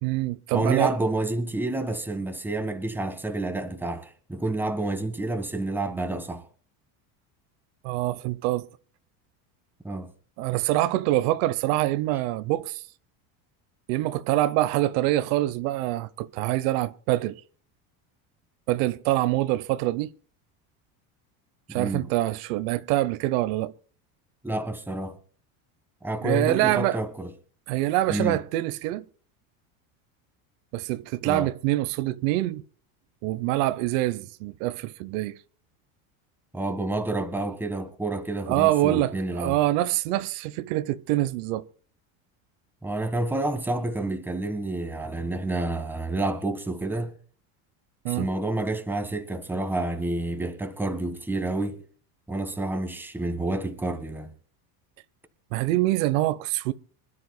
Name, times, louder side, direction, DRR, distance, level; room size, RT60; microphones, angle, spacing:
voice 1, 0.0-0.9 7.8-8.7 10.4-12.8 13.9-17.4 18.7-20.1 21.7-23.7 26.2-27.0 27.7-29.0 30.7-32.6 33.2-35.4 38.5-41.6 48.0-48.3 55.5-56.7, right 16 dB, 70° right, 0.9 m, -25 dB
voice 2, 0.5-6.4 9.8-10.1 21.7-22.1 24.4-25.2 26.0-27.3 28.1-28.4 31.2-31.5 36.5-39.6 42.8-47.1 48.1-51.8 52.3-54.3, right 2 dB, 5° right, 1.5 m, -29 dB
25.5 x 12.5 x 2.2 m
cardioid pair, 150°, 42 cm